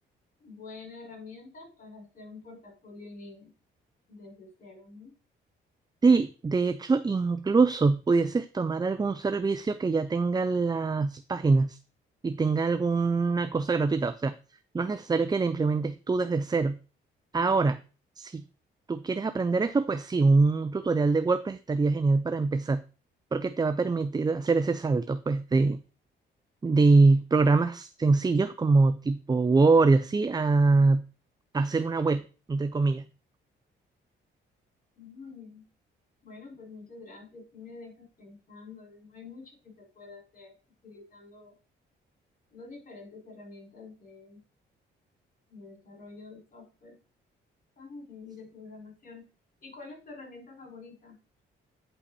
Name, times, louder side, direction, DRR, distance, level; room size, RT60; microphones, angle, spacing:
voice 1, 0.4-3.5 4.1-5.1 35.0-35.7 36.2-40.5 40.8-41.6 42.5-44.4 45.5-47.0 47.8-49.2 49.6-51.2, left 3 dB, 45° left, 0 dB, 5.8 m, -47 dB
voice 2, 6.0-11.8 12.2-14.3 14.7-16.8 17.3-17.8 18.2-18.4 18.9-22.8 23.3-25.8 26.6-31.0 31.5-33.1, right 3 dB, 20° right, 11 dB, 0.6 m, -24 dB
9.7 x 5.5 x 4.3 m, 0.35 s
cardioid pair, 90°, 20 cm